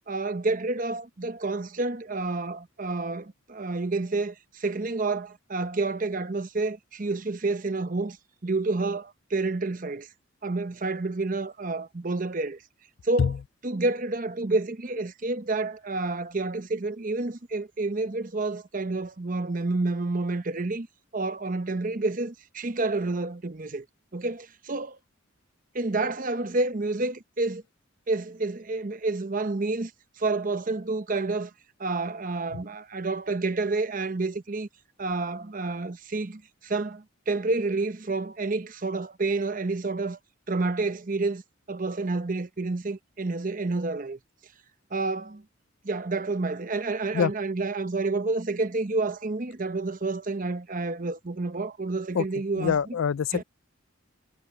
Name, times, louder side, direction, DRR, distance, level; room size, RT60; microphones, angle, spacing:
voice 1, 0.1-8.2 8.4-10.1 10.4-12.6 13.0-13.3 13.6-20.9 21.1-23.9 24.1-25.0 25.7-27.6 28.1-29.9 30.2-31.5 31.8-34.7 35.0-40.2 40.5-41.4 41.7-44.2 44.9-45.4 45.8-52.8 53.3-53.4, right 3 dB, 40° right, 0.8 m, -29 dB
voice 2, 52.5-53.4, left 7 dB, 70° left, 0.4 m, -25 dB
head